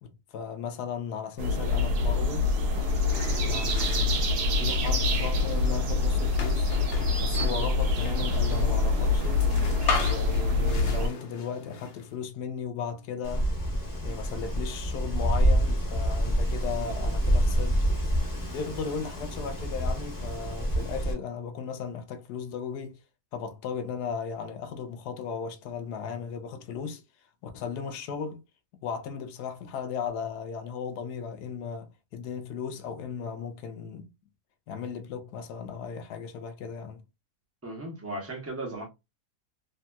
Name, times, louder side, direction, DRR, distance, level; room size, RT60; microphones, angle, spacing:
voice 1, 0.0-2.5 3.4-6.7 7.2-9.5 9.9-13.6 14.0-18.0 18.5-23.0 23.3-27.0 27.4-28.4 28.8-34.1 34.7-37.0, left 6 dB, 80° left, 1.2 m, -36 dB
sound 1, 1.4-11.1, left 3 dB, 80° right, 1.4 m, -25 dB
sound 2, 2.7-12.2, left 4 dB, 60° left, 0.6 m, -38 dB
Wind, 13.2-21.1, equal, 15° left, 1.0 m, -27 dB
voice 2, 37.6-38.9, right 1 dB, 10° right, 0.7 m, -36 dB
3.0 x 2.8 x 2.2 m
omnidirectional pair, 1.7 m